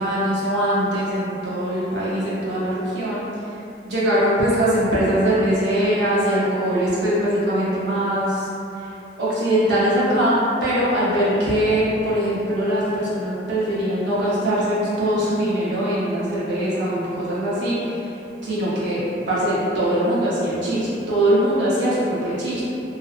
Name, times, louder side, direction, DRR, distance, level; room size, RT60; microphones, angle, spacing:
voice 1, 0.0-3.3 3.8-8.5 8.7-8.9 9.2-18.1 18.4-22.6, right 1 dB, 85° right, -9 dB, 0.8 m, -22 dB
2.6 x 2.0 x 2.4 m, 2.7 s
head